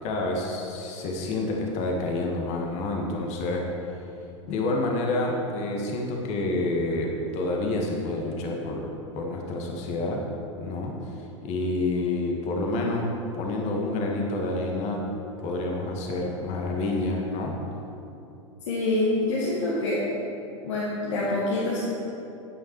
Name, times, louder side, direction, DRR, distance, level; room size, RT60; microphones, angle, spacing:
voice 1, 0.0-3.7 4.5-10.2 10.6-15.0 15.4-17.6, left 2 dB, 40° left, 0 dB, 1.7 m, -28 dB
voice 2, 18.7-20.1 20.6-21.8, left 2 dB, 65° left, -6 dB, 1.9 m, -26 dB
9.3 x 9.0 x 4.7 m, 2.8 s
hypercardioid pair, 95°, 17 cm